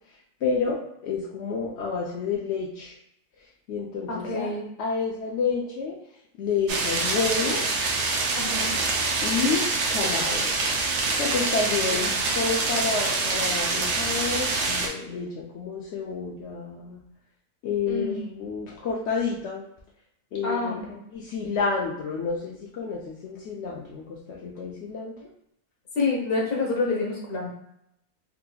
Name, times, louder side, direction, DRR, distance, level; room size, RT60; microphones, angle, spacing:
voice 1, 0.4-2.9 3.7-4.5 4.8-6.0 6.4-7.6 9.2-10.7 11.2-17.0 17.6-19.6 20.3-20.8 21.1-25.1, left 5 dB, 65° left, -4 dB, 0.7 m, -29 dB
voice 2, 4.1-4.7 8.4-8.8 11.9-12.1 17.9-18.2 20.4-20.8 25.9-27.5, left 3 dB, 40° left, -1 dB, 1.0 m, -28 dB
sound 1, 6.7-14.9, right 3 dB, 85° right, 1.2 m, -25 dB
4.1 x 2.8 x 2.2 m, 0.75 s
omnidirectional pair, 1.7 m